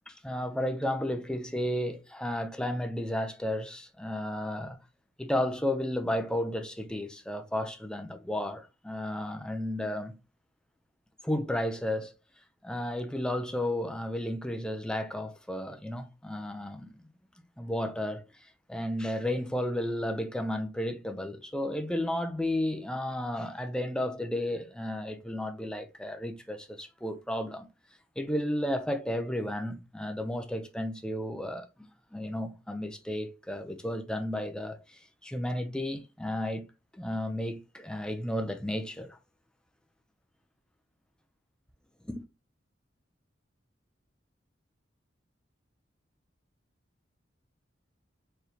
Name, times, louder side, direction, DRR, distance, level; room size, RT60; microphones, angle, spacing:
voice 1, 0.1-4.8 5.2-10.1 11.2-12.1 12.6-16.9 17.6-18.3 18.7-27.6 28.2-31.7 32.1-36.6 36.9-39.2 42.0-42.2, left 1 dB, 5° left, 0.5 m, -33 dB
4.8 x 3.2 x 2.8 m
head